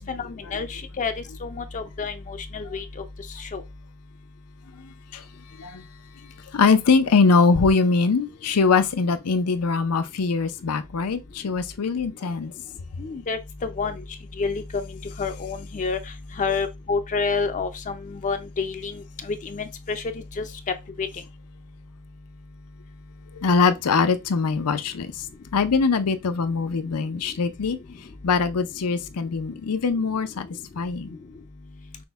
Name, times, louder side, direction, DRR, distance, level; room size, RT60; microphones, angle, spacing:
voice 1, 0.1-1.1 1.4-2.8 3.5-3.6 13.0-13.9 14.4-14.8 15.2-16.0 16.4-17.7 18.2-18.9 19.3-20.0 20.4-20.5 21.0-21.1, left 4 dB, 35° left, 0.4 m, -28 dB
voice 2, 6.5-12.5 23.4-25.1 25.5-27.8 28.2-30.5 30.8-31.1, left 4 dB, 90° left, 0.5 m, -22 dB
6.0 x 2.1 x 3.4 m
head